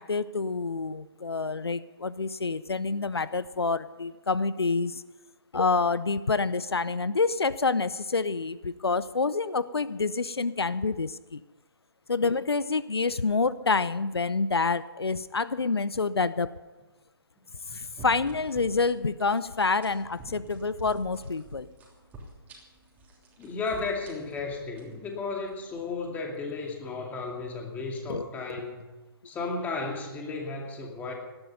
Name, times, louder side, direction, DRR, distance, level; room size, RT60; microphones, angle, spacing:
voice 1, 0.0-5.0 5.5-11.4 12.1-16.5 17.7-21.7 28.1-28.3 28.6-28.7, left 4 dB, 85° left, 17 dB, 0.6 m, -27 dB
sound 1, 18.0-26.1, right 1 dB, 15° right, 3.1 m, -48 dB
voice 2, 23.4-28.9 29.2-31.1, left 3 dB, 10° left, 1 dB, 2.5 m, -34 dB
18.0 x 11.5 x 5.5 m, 1.2 s
figure-of-eight pair, 140°, 13 cm